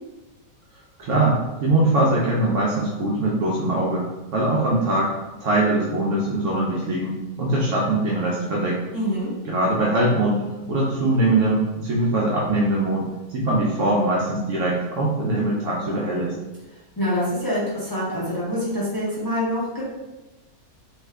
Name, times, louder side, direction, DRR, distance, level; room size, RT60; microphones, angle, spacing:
voice 1, 1.0-4.1 4.3-5.1 5.4-8.8 9.5-10.4 10.7-13.1 13.3-16.3, right 2 dB, 65° right, -4 dB, 0.8 m, -22 dB
voice 2, 8.9-9.3 17.0-19.8, equal, 20° left, -9 dB, 0.6 m, -25 dB
2.7 x 2.3 x 3.3 m, 1.1 s
omnidirectional pair, 1.6 m